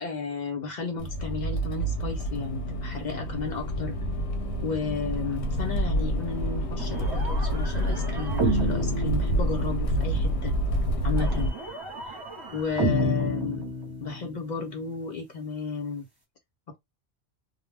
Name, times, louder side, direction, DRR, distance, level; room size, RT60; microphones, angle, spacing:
voice 1, 0.0-4.0 4.6-10.6 11.0-11.5 12.1-12.2 12.5-13.6 14.0-16.1, left 5 dB, 50° left, 0.7 m, -33 dB
Accelerating revving vroom, 1.0-11.5, right 1 dB, 85° left, 0.9 m, -28 dB
sound 1, 6.8-10.0 11.2-14.4, equal, 25° right, 0.9 m, -31 dB
2.3 x 2.1 x 3.2 m
omnidirectional pair, 1.1 m